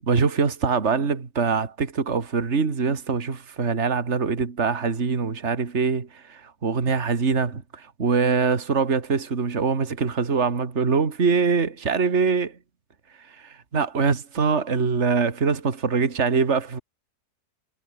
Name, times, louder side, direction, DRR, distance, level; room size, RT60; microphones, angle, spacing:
voice 1, 0.0-12.6 13.1-16.8, right 5 dB, 50° right, 2.4 m, -23 dB
omnidirectional pair, 1.6 m